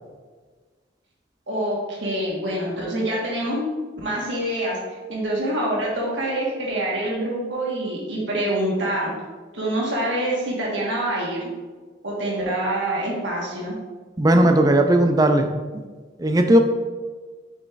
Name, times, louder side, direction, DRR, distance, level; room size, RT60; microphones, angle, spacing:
voice 1, 1.5-3.7 4.0-4.8 5.1-9.1 9.5-11.4 12.0-13.8, right 1 dB, 80° right, -4 dB, 1.5 m, -25 dB
voice 2, 14.2-15.4 16.2-16.6, right 1 dB, 20° right, 5 dB, 0.4 m, -16 dB
6.4 x 6.1 x 2.5 m, 1.4 s
head